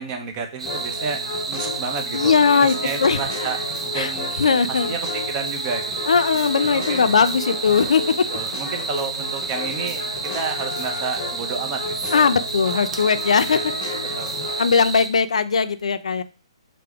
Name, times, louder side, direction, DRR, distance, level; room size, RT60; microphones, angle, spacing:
voice 1, 0.0-3.6 3.9-4.3 4.7-5.0 5.3-6.1 6.7-7.0 8.3-10.0 10.3-12.1 13.5-13.6 14.2-14.5, right 5 dB, 20° right, 4 dB, 0.4 m, -31 dB
sound 1, 0.6-15.1, right 4 dB, 80° right, 0.5 m, -30 dB
sound 2, 0.7-14.7, left 3 dB, 30° left, 0.7 m, -32 dB
voice 2, 2.1-3.2 3.9-4.9 6.1-8.3 12.1-13.7 14.6-16.2, left 5 dB, 90° left, 11 dB, 0.3 m, -19 dB
3.4 x 2.0 x 3.4 m, 0.34 s
hypercardioid pair, 165°, 3 cm